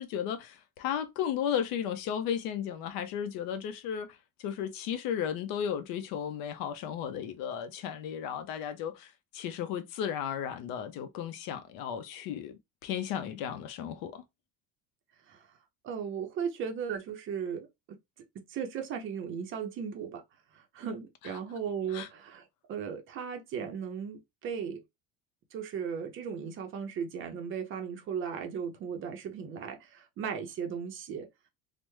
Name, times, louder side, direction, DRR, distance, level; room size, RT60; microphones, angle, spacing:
voice 1, 0.0-14.2 21.9-22.1, left 9 dB, 65° left, 0.6 m, -34 dB
voice 2, 15.8-18.0 18.3-20.2 20.5-24.8 25.5-31.3, right 7 dB, 35° right, 0.5 m, -37 dB
3.3 x 2.0 x 3.0 m
cardioid pair, 175°, 38 cm